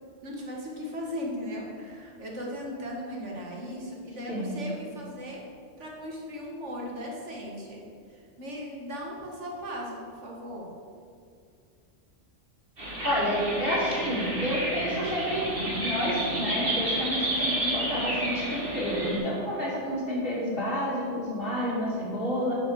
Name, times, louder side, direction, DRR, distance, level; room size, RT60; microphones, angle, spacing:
voice 1, 0.2-5.4 5.8-7.8 8.1-10.7, equal, 75° right, -2 dB, 2.1 m, -37 dB
sound 1, 12.8-19.2, right 1 dB, 50° right, 2.5 m, -30 dB
voice 2, 13.0-15.4 15.8-22.6, equal, 50° left, -6 dB, 2.8 m, -29 dB
9.3 x 5.9 x 6.9 m, 2.3 s
omnidirectional pair, 1.2 m